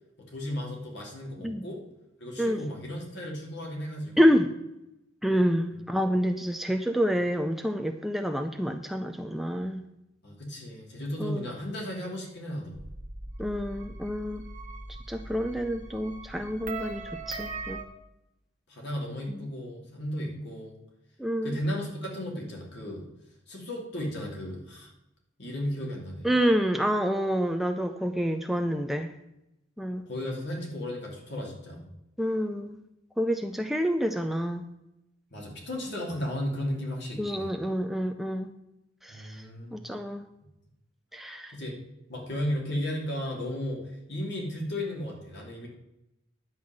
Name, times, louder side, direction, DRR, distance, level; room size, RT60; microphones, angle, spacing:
voice 1, 0.2-1.8 2.2-4.3 10.2-12.8 18.7-20.8 21.4-23.0 23.5-24.9 25.4-26.3 30.1-31.9 35.3-37.5 39.1-39.8 41.5-41.8 42.1-43.8 44.1-45.7, left 1 dB, 60° left, -1 dB, 2.8 m, -34 dB
voice 2, 4.2-4.5 5.2-9.8 11.2-11.4 13.4-14.5 15.1-17.8 19.3-19.4 21.2-21.6 26.2-29.1 29.8-30.0 32.2-32.8 33.2-34.6 37.2-38.5 39.0-39.4 39.7-40.2 41.1-41.5, equal, ahead, 5 dB, 0.5 m, -28 dB
sound 1, 12.7-17.8, right 3 dB, 40° right, 1.3 m, -40 dB
10.5 x 5.6 x 7.7 m, 0.90 s
head